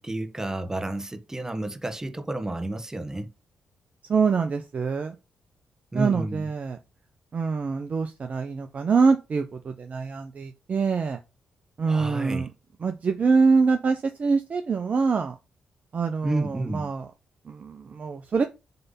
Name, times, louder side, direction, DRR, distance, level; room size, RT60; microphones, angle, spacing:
voice 1, 0.0-3.3 5.9-6.5 11.8-12.5 16.2-16.9, right 1 dB, 15° right, 1.5 m, -30 dB
voice 2, 4.1-5.1 5.9-6.8 7.3-11.2 11.8-12.5 12.8-15.4 15.9-17.1 17.5-18.5, right 5 dB, 50° right, 0.8 m, -24 dB
7.8 x 3.4 x 5.6 m
supercardioid pair, 50°, 3 cm